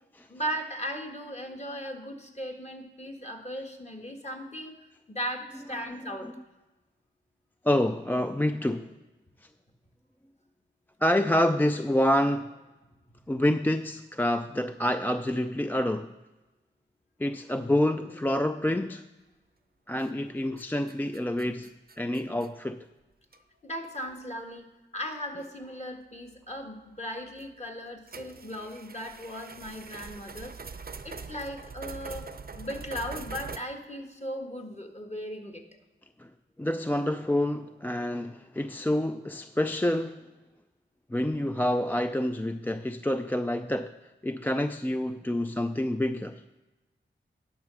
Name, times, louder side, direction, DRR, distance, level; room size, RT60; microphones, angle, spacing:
voice 1, 0.3-6.3 23.6-24.7 24.9-32.3 32.5-35.6, equal, 30° left, 2 dB, 1.5 m, -37 dB
voice 2, 7.6-9.0 11.0-12.5 13.3-16.1 17.2-19.0 19.9-21.7 22.0-22.8 36.2-36.3 36.6-40.2 41.1-43.9 44.2-46.4, left 1 dB, 10° left, 8 dB, 0.3 m, -27 dB
sound 1, 20.0-20.3 20.6-22.5 23.3-23.4 24.0-24.1 25.4-25.5 27.3-27.5 28.1-33.6, right 5 dB, 45° right, 0.6 m, -43 dB
11.0 x 5.5 x 6.2 m, 1.1 s
cardioid pair, 55°, 21 cm